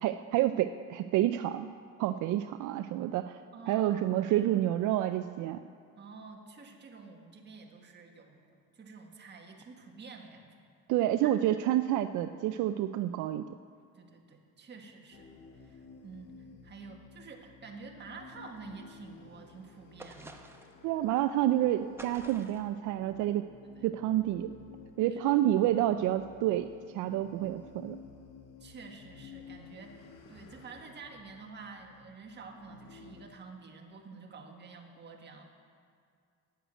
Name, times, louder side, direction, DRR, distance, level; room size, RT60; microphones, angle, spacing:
voice 1, 0.0-1.7 2.0-3.4 3.7-5.6 10.9-13.4 20.8-23.5 23.8-24.5 25.0-26.7 26.9-28.0, right 13 dB, 75° right, 10 dB, 0.5 m, -29 dB
voice 2, 3.5-4.7 6.0-10.5 11.2-11.5 13.9-20.4 23.6-23.9 25.1-25.4 28.6-35.5, right 4 dB, 35° right, 2 dB, 1.7 m, -49 dB
sound 1, 15.1-33.3, left 6 dB, 85° left, 1.4 m, -53 dB
sound 2, 20.0-20.8 22.0-22.7, right 2 dB, 10° right, 0.9 m, -49 dB
10.0 x 7.9 x 9.0 m, 2.3 s
cardioid pair, 120°, 30 cm